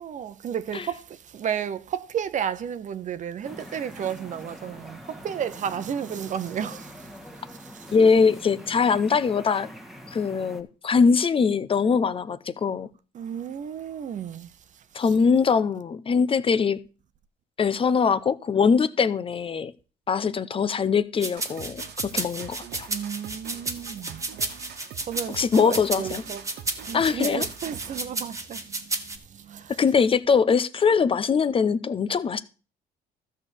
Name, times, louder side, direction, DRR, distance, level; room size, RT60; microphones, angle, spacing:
voice 1, 0.0-7.1 7.5-7.9 13.1-14.8 22.9-24.2 25.0-26.4 26.8-29.8, right 8 dB, 45° right, 0.8 m, -33 dB
sound 1, 3.4-10.6, equal, ahead, 1.6 m, -44 dB
voice 2, 7.9-9.7 10.1-12.9 14.9-16.8 17.6-19.7 20.1-22.9 25.3-26.2 26.9-27.5 29.8-32.4, left 5 dB, 30° left, 0.7 m, -22 dB
sound 2, 21.2-29.2, right 2 dB, 20° right, 1.6 m, -32 dB
sound 3, 21.4-28.2, right 9 dB, 75° right, 1.3 m, -44 dB
13.0 x 4.3 x 8.2 m
cardioid pair, 110°, 17 cm